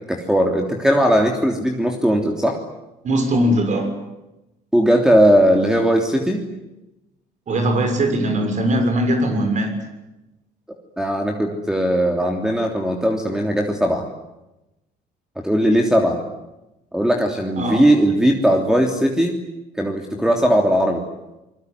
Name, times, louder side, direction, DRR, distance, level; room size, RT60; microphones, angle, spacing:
voice 1, 0.1-2.6 4.7-6.4 11.0-14.1 15.4-16.2 16.9-19.4 19.8-21.0, equal, 5° right, 2 dB, 3.2 m, -18 dB
voice 2, 3.0-3.9 7.5-9.7 17.6-17.8, right 1 dB, 45° right, 6 dB, 6.6 m, -20 dB
27.5 x 22.0 x 9.7 m, 0.96 s
cardioid pair, 110°, 17 cm